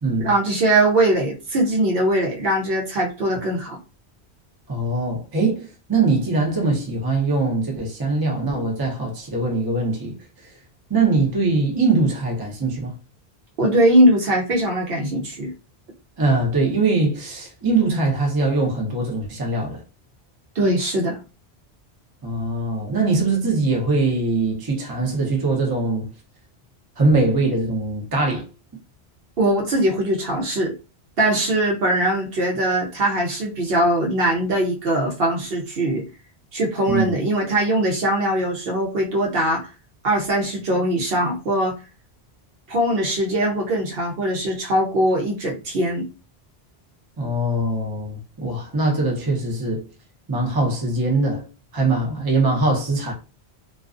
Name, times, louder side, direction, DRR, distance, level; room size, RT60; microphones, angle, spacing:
voice 1, 0.2-3.8 13.6-15.5 20.6-21.2 29.4-30.7 31.2-36.0 36.5-39.7 40.0-41.7 42.7-46.1, right 1 dB, 65° right, 0.8 m, -21 dB
voice 2, 4.7-5.6 5.9-10.1 10.9-12.9 16.2-19.8 22.2-26.1 27.0-28.4 36.9-37.1 47.2-49.8 50.3-51.4 51.7-53.1, right 3 dB, 25° right, 0.6 m, -22 dB
2.3 x 2.3 x 2.4 m
omnidirectional pair, 1.1 m